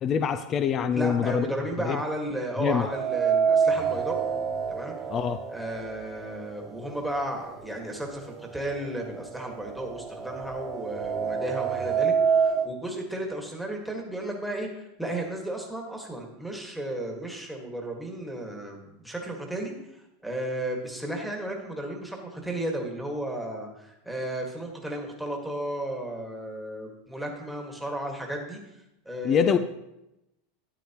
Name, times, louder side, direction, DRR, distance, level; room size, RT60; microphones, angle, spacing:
voice 1, 0.0-1.5 1.9-2.0 2.6-2.9 5.1-5.4 29.2-29.6, left 7 dB, 30° left, 11 dB, 0.4 m, -24 dB
voice 2, 0.9-4.2 4.7-4.9 5.5-28.6 29.1-29.6, right 1 dB, ahead, 0 dB, 1.6 m, -34 dB
sound 1, 2.9-6.9 7.3-7.4 8.4-8.5 8.8-12.7, right 6 dB, 20° right, 0.8 m, -27 dB
12.5 x 9.1 x 2.9 m, 0.88 s
supercardioid pair, 150°, 0 cm